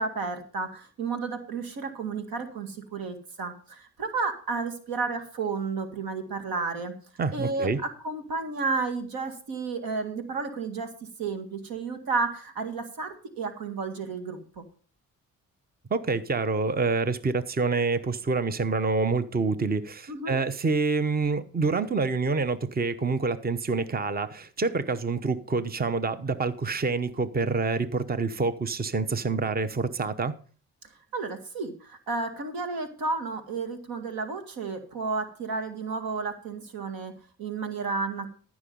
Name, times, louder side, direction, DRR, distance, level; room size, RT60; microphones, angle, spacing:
voice 1, 0.0-7.0 7.3-10.9 11.2-14.6 20.1-20.4 31.1-38.3, right 4 dB, 85° right, 2.0 m, -32 dB
voice 2, 7.2-7.8 15.9-30.3, right 4 dB, 25° right, 0.9 m, -27 dB
14.0 x 6.2 x 5.4 m
supercardioid pair, 60°, 35 cm